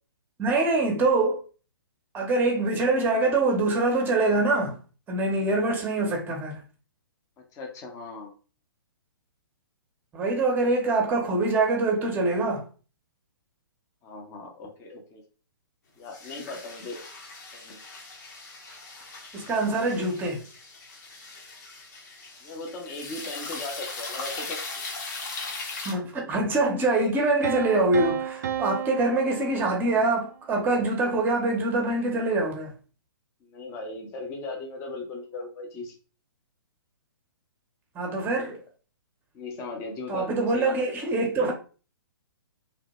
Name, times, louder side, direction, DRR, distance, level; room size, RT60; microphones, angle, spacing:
voice 1, 0.4-1.4 2.1-4.8 5.1-6.6 10.1-12.6 19.3-20.4 25.8-32.7 37.9-38.5 40.1-41.5, right 2 dB, 15° right, 0.7 m, -24 dB
voice 2, 7.5-8.3 14.0-15.2 16.0-17.0 17.5-17.8 22.4-24.6 33.4-35.9 38.3-38.6 39.3-40.8, left 3 dB, 25° left, 0.6 m, -38 dB
sound 1, 16.1-25.9, left 3 dB, 45° left, 0.9 m, -39 dB
Piano, 27.4-30.3, right 9 dB, 50° right, 0.4 m, -33 dB
2.9 x 2.1 x 2.9 m
figure-of-eight pair, 125°, 12 cm